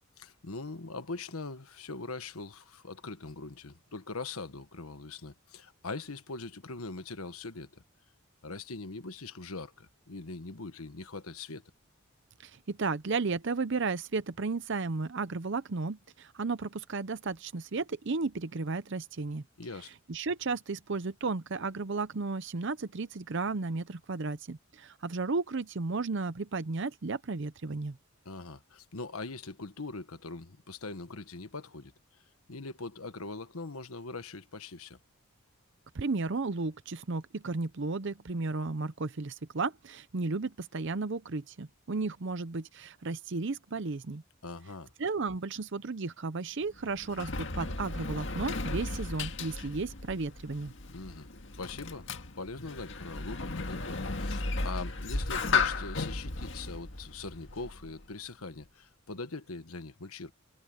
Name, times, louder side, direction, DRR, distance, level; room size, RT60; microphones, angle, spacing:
voice 1, 0.2-7.8 8.4-11.6 19.6-19.9 28.2-31.9 32.5-35.0 44.4-44.9 50.9-51.3 51.6-52.1 52.4-60.3, left 3 dB, 85° left, 1.4 m, -42 dB
voice 2, 12.4-19.4 20.1-28.0 35.9-44.2 45.0-50.7, right 3 dB, 55° right, 0.7 m, -34 dB
Sliding door, 46.6-58.1, left 4 dB, 60° left, 1.9 m, -35 dB
head